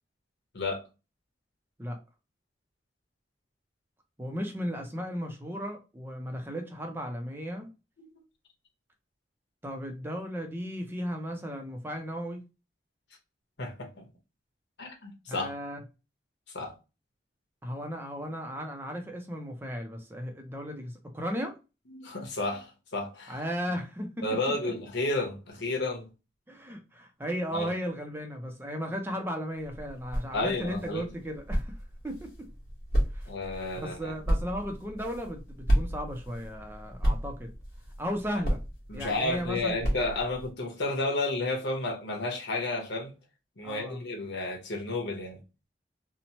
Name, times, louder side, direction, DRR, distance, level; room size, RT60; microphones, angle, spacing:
voice 1, 4.2-7.7 9.6-12.4 15.3-15.8 17.6-21.6 23.3-24.7 26.5-31.8 32.0-32.5 33.1-33.3 33.7-37.5 38.0-38.6 38.9-39.8 43.6-44.0, equal, 10° right, 0.5 m, -35 dB
voice 2, 13.6-14.0 14.8-15.5 16.5-16.7 21.9-23.4 24.2-26.1 27.5-27.7 30.3-31.0 33.3-34.1 38.9-43.1 43.6-45.4, left 2 dB, 80° left, 0.9 m, -32 dB
sound 1, 29.5-40.5, equal, 55° left, 1.2 m, -32 dB
2.9 x 2.1 x 2.8 m
head